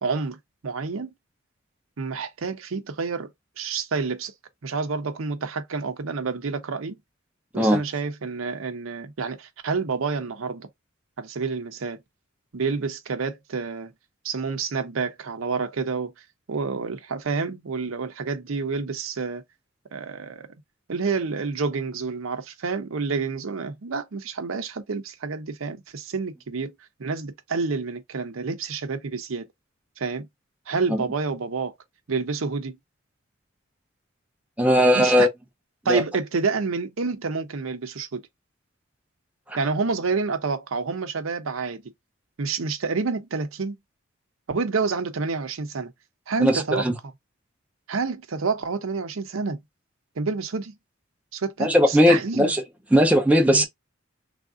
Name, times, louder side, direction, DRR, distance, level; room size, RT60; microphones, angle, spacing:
voice 1, 0.0-0.4 0.6-1.1 2.0-3.3 3.6-4.3 4.6-7.0 7.5-10.7 11.2-12.0 12.5-13.9 14.2-16.1 16.5-19.4 19.9-20.5 20.9-26.7 27.0-29.5 30.0-30.3 30.7-31.7 32.1-32.8 34.9-35.3 35.8-38.2 39.6-41.8 42.4-43.8 44.5-45.9 46.3-46.8 47.9-49.6 50.2-50.8 51.3-52.5 53.5-53.6, right 4 dB, 75° right, 0.6 m, -28 dB
voice 2, 34.6-35.3 35.9-36.0 39.5-39.6 46.4-46.9 51.6-52.6 52.9-53.7, equal, 5° right, 0.5 m, -18 dB
3.5 x 2.5 x 2.4 m
head